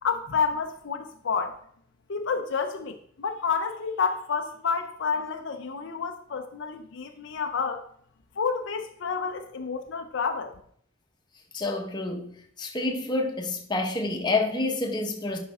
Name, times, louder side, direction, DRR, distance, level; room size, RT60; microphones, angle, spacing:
voice 1, 0.0-1.6 2.1-7.8 8.4-10.5, left 5 dB, 65° left, 0.6 m, -29 dB
voice 2, 11.5-12.3 12.6-15.4, left 2 dB, 20° left, 1.1 m, -28 dB
11.0 x 5.2 x 3.6 m
head